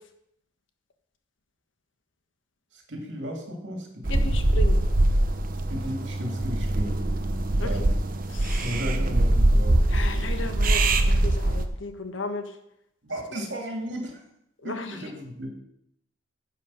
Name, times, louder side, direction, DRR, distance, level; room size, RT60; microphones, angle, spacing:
voice 1, 2.7-4.3 5.7-7.0 7.6-7.9 8.6-9.8 13.0-14.2 14.6-15.5, equal, 60° right, 1 dB, 2.5 m, -34 dB
sound 1, 4.0-11.7, right 1 dB, 45° right, 0.8 m, -23 dB
voice 2, 4.1-4.8 7.6-7.7 8.3-8.8 9.9-12.6 14.6-15.0, left 2 dB, 70° left, 7 dB, 1.3 m, -35 dB
10.5 x 7.5 x 5.6 m, 0.77 s
head